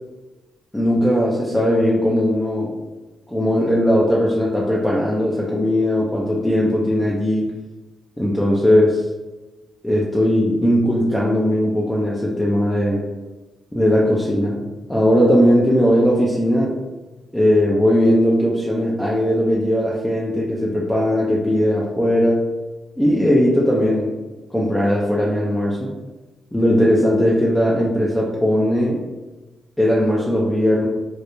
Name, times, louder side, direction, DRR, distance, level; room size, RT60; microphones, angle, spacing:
voice 1, 0.7-2.8 3.3-7.5 8.2-9.0 9.8-13.0 13.7-14.6 14.9-16.8 17.3-22.4 23.0-24.1 24.5-25.9 26.5-29.0 29.8-30.9, equal, 10° left, -4 dB, 0.5 m, -18 dB
2.3 x 2.0 x 2.9 m, 1.2 s
supercardioid pair, 50°, 0 cm